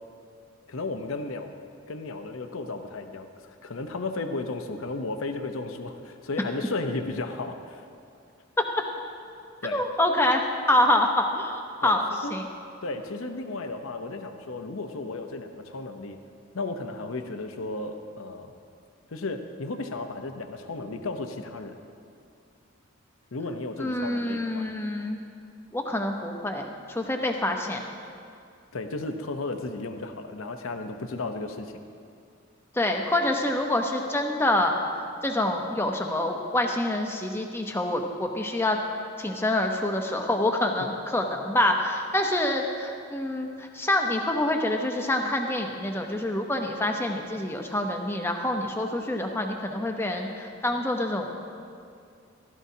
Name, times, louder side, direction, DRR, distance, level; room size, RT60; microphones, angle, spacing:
voice 1, 0.7-1.5 1.9-7.9 9.6-9.8 11.8-12.4 12.8-16.2 16.5-18.5 19.1-21.8 23.3-24.7 28.7-31.8, left 3 dB, 75° left, 6 dB, 0.7 m, -34 dB
voice 2, 9.6-12.0 12.3-12.5 23.8-25.2 25.7-27.8 32.7-34.7 35.2-38.8 39.2-51.3, left 1 dB, 10° left, 3 dB, 0.7 m, -26 dB
15.5 x 13.0 x 2.8 m, 2.4 s
head